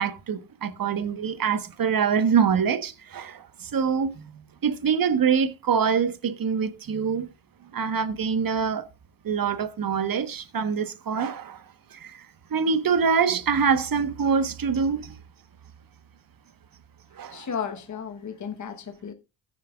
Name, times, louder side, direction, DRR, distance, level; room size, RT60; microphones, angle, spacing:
voice 1, 0.0-7.3 7.7-8.9 9.2-11.6 11.9-15.1 17.1-17.5, right 6 dB, 45° right, 1.3 m, -25 dB
voice 2, 17.3-19.1, left 7 dB, 35° left, 1.2 m, -34 dB
14.5 x 9.6 x 2.4 m
hypercardioid pair, 55°, 48 cm